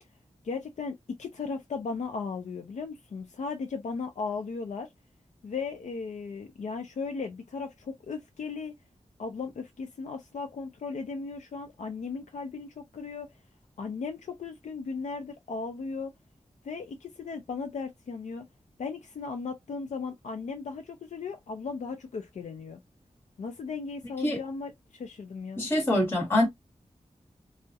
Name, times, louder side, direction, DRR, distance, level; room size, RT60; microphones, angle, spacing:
voice 1, 0.4-4.9 5.4-8.7 9.2-13.3 13.8-16.1 16.6-18.4 18.8-22.8 23.4-25.7, left 4 dB, 75° left, 0.4 m, -36 dB
voice 2, 25.6-26.5, left 1 dB, 20° left, 1.1 m, -24 dB
2.3 x 2.0 x 2.6 m
wide cardioid pair, 95°, 12 cm